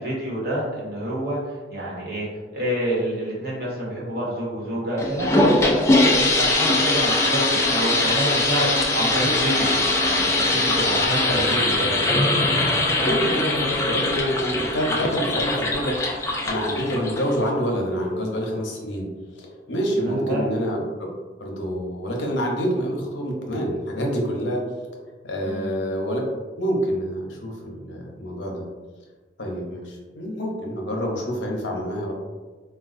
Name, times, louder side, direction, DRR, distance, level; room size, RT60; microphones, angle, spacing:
voice 1, 0.0-2.3 2.5-11.9 20.0-20.5 25.4-25.8, right 1 dB, 55° right, -5 dB, 1.1 m, -28 dB
sound 1, 5.0-17.5, left 2 dB, 15° left, 0.3 m, -21 dB
voice 2, 13.0-19.1 19.4-20.8 21.4-24.6 25.2-26.2 26.6-28.7 29.4-32.1, equal, 75° left, -1 dB, 0.7 m, -27 dB
4.0 x 2.3 x 2.5 m, 1.3 s
head